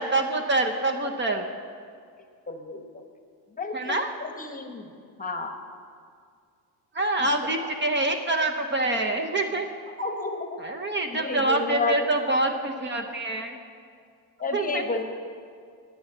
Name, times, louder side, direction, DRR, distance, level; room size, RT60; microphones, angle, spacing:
voice 1, 0.0-1.5 3.7-4.1 6.9-9.7 10.6-13.6 14.5-14.8, right 2 dB, 25° right, 4 dB, 0.8 m, -26 dB
voice 2, 2.5-3.0 3.6-4.9 5.2-5.6 7.6-7.7 9.9-10.6 11.1-12.1 14.4-15.0, left 3 dB, 20° left, 5 dB, 1.0 m, -31 dB
10.0 x 9.4 x 7.3 m, 2.2 s
cardioid pair, 130°, 41 cm